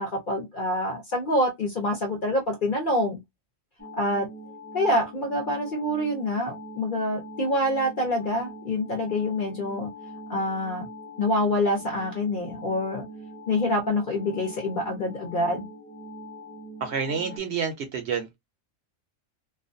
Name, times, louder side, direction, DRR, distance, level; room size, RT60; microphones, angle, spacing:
voice 1, 0.0-3.2 4.0-4.3 4.7-9.9 10.3-10.9 11.2-13.0 13.5-15.7, left 1 dB, 50° left, 0.6 m, -26 dB
sound 1, 3.8-17.4, equal, 10° left, 0.6 m, -42 dB
voice 2, 16.8-18.3, right 6 dB, 65° right, 0.8 m, -29 dB
2.4 x 2.2 x 2.5 m
omnidirectional pair, 1.4 m